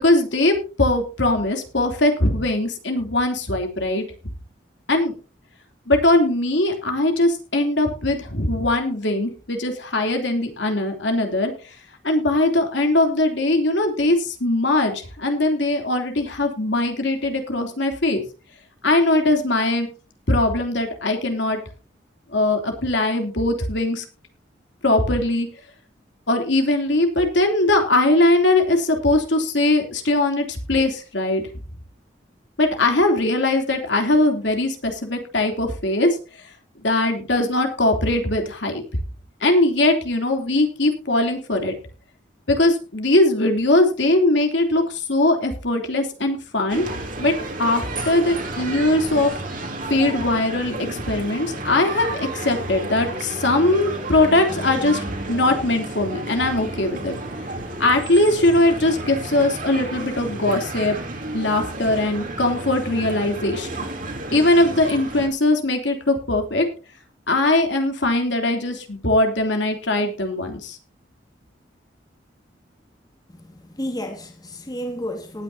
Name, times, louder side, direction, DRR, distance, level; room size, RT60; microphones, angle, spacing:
voice 1, 0.0-4.0 4.9-5.1 5.9-11.5 12.0-18.2 18.8-19.9 20.3-21.6 22.3-24.0 24.8-25.5 26.3-31.4 32.6-36.2 36.8-38.8 39.4-41.7 42.5-46.9 47.2-47.3 47.6-49.3 49.6-57.1 57.8-61.0 61.3-63.9 64.3-66.7 67.3-70.8, left 2 dB, 75° left, 3.2 m, -20 dB
sound 1, 46.7-65.3, right 2 dB, 50° right, 3.3 m, -32 dB
voice 2, 73.3-75.4, equal, 20° left, 2.4 m, -32 dB
19.0 x 9.7 x 2.8 m
head